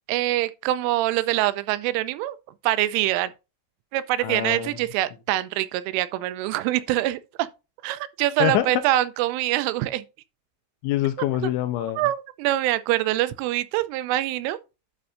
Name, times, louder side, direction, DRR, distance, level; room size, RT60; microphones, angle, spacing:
voice 1, 0.1-2.4 2.6-3.3 3.9-7.5 7.8-10.0 11.4-11.5 12.0-14.6, right 15 dB, 85° right, 3.0 m, -24 dB
voice 2, 4.2-4.8 8.4-8.8 10.8-12.1, left 13 dB, 85° left, 3.0 m, -25 dB
11.0 x 5.3 x 2.5 m
omnidirectional pair, 5.7 m